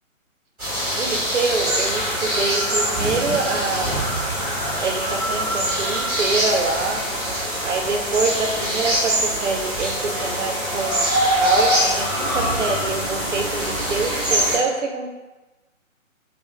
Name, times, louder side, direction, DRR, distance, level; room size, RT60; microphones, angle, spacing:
sound 1, 0.6-14.6, right 1 dB, ahead, 1.1 m, -23 dB
voice 1, 1.0-4.0 4.8-7.0 7.6-11.1 11.4-15.1, right 4 dB, 60° right, 2 dB, 0.5 m, -25 dB
2.9 x 2.1 x 2.2 m, 1.1 s
figure-of-eight pair, 145°, 41 cm